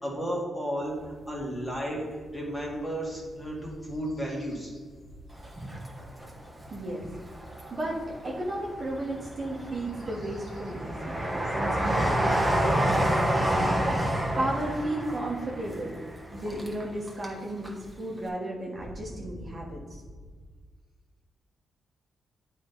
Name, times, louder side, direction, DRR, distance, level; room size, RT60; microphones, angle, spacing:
voice 1, 0.0-4.7 7.0-7.1, equal, 15° left, -2 dB, 1.9 m, -33 dB
sound 1, 0.8-13.3, equal, 55° left, 1.8 m, -52 dB
Train, 5.4-6.7 7.1-8.1 8.6-17.4 17.6-17.7, right 1 dB, 5° right, 1.1 m, -28 dB
voice 2, 6.7-7.0 7.7-8.0 8.2-13.9 14.4-16.0 16.3-19.8, right 1 dB, 25° right, -4 dB, 1.2 m, -34 dB
10.0 x 4.3 x 3.9 m, 1.5 s
wide cardioid pair, 155°, 0 cm